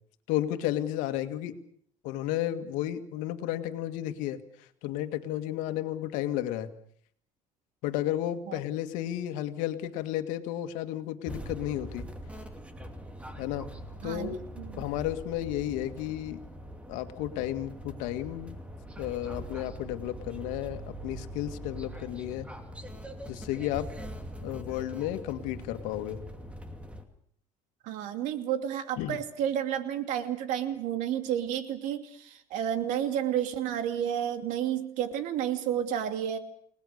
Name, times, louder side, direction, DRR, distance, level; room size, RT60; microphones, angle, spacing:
voice 1, 0.3-1.5 2.0-4.4 4.8-6.7 7.8-12.1 13.4-13.7 14.0-14.4 14.8-16.4 16.9-18.6 19.0-22.5 23.3-23.9 24.4-26.2 29.0-29.2, left 13 dB, 90° left, 9 dB, 2.0 m, -32 dB
sound 1, 11.2-27.0, equal, 10° right, 2.6 m, -42 dB
voice 2, 14.0-14.8 27.8-36.4, right 10 dB, 75° right, 8 dB, 2.8 m, -31 dB
29.5 x 19.0 x 6.7 m, 0.64 s
cardioid pair, 130°, 13 cm